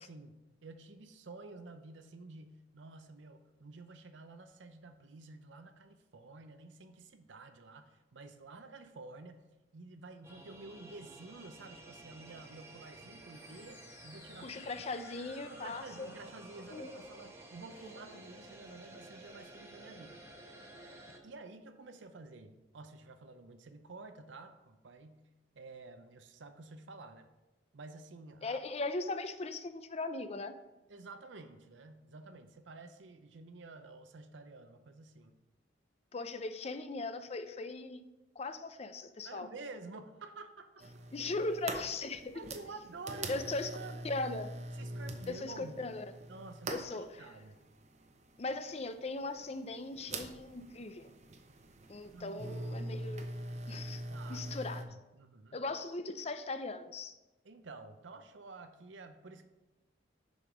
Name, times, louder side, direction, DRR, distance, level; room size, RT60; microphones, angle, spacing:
voice 1, 0.0-9.4 9.7-14.6 15.5-20.2 20.8-25.3 25.5-27.3 27.7-28.6 30.9-35.3 39.2-41.3 42.3-44.1 44.7-45.9 46.3-47.6 52.1-52.8 54.1-54.6 55.1-55.6 57.4-59.5, right 3 dB, 80° right, 8 dB, 0.6 m, -51 dB
sound 1, 10.2-21.2, right 2 dB, 15° right, 0.9 m, -53 dB
sound 2, 13.3-19.0, left 2 dB, 65° left, 2.2 m, -54 dB
voice 2, 14.4-16.1 28.4-30.6 36.1-38.0 38.4-39.5 41.1-42.4 43.3-43.7 44.0-44.5 45.3-46.0 46.7-47.3 48.4-51.1 51.9-53.3 53.7-54.0 54.3-54.8 55.5-57.2, left 3 dB, 35° left, 10 dB, 0.5 m, -39 dB
sound 3, 40.8-54.8, right 2 dB, 40° right, 0.7 m, -43 dB
7.0 x 5.4 x 5.0 m, 1.1 s
head